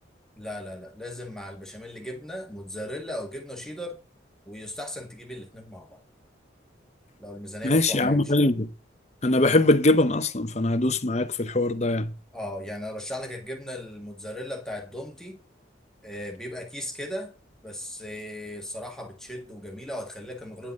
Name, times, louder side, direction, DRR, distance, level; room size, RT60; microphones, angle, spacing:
voice 1, 0.4-4.0 4.5-6.0 7.2-8.5 12.3-15.4 16.0-17.3 17.6-20.7, left 1 dB, 5° left, 1.6 m, -37 dB
voice 2, 7.6-8.7 9.2-12.1, left 2 dB, 35° left, 0.8 m, -22 dB
10.0 x 5.4 x 7.7 m
head